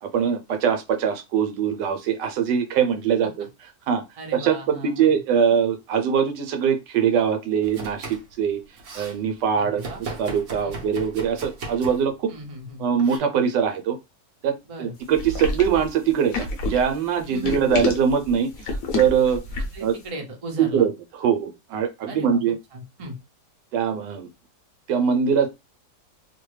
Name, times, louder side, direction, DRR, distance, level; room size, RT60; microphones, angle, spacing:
voice 1, 0.0-3.3 3.9-4.0 4.3-8.6 8.9-9.8 10.2-12.3 12.8-14.0 14.4-19.4 19.8-19.9 20.6-20.9 21.2-22.6 23.7-24.3 24.9-25.5, right 7 dB, 85° right, 5 dB, 1.3 m, -22 dB
voice 2, 4.2-5.2 9.6-10.0 10.6-10.8 12.3-12.8 14.6-14.9 17.3-17.8 19.7-20.9 22.1-22.4 22.7-23.2, right 1 dB, 40° right, 1 dB, 0.5 m, -37 dB
Domestic sounds home sounds, 7.6-8.3 8.6-9.2 9.8-12.1 13.0-13.2, right 3 dB, 55° right, 1.0 m, -37 dB
sound 1, 15.1-19.9, left 3 dB, 60° left, 1.0 m, -29 dB
3.0 x 2.1 x 3.1 m, 0.23 s
omnidirectional pair, 1.9 m